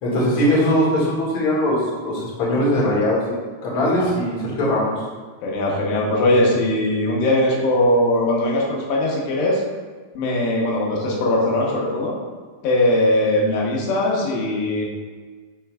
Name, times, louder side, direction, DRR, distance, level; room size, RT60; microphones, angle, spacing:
voice 1, 0.0-4.9, equal, 40° left, -6 dB, 1.9 m, -20 dB
voice 2, 5.4-9.6 10.2-12.1 12.6-14.9, left 1 dB, 85° left, -3 dB, 3.4 m, -20 dB
13.0 x 4.4 x 2.4 m, 1.4 s
omnidirectional pair, 4.8 m